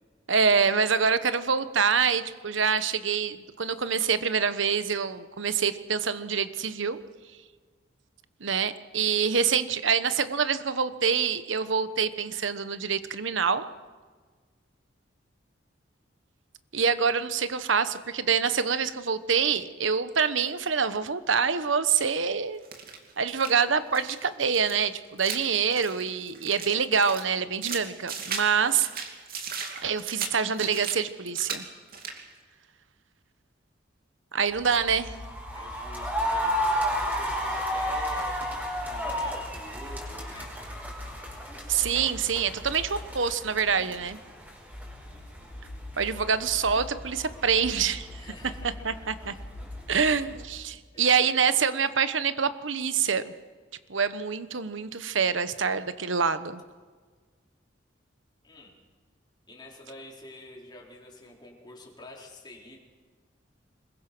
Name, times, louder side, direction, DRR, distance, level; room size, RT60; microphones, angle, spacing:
voice 1, 0.3-7.0 8.4-13.6 16.7-22.6 23.2-28.9 29.8-31.6 34.3-35.1 41.7-44.2 46.0-48.1 48.8-49.3 49.9-53.3 53.9-56.6, right 6 dB, 80° right, 12 dB, 1.1 m, -26 dB
sound 1, 21.9-22.2 22.6-23.6 23.9-24.2 24.5-26.7 27.0-28.5 28.8-31.0 31.3-31.6 31.9-32.3, right 6 dB, 50° right, 2.7 m, -37 dB
sound 2, 34.5-50.4, equal, 10° right, 5.1 m, -33 dB
voice 2, 35.5-38.4 38.9-40.6 48.1-49.4 50.9-51.3 58.4-58.8 59.5-62.8, left 1 dB, 25° left, -1 dB, 4.3 m, -47 dB
26.0 x 21.5 x 6.2 m, 1.5 s
head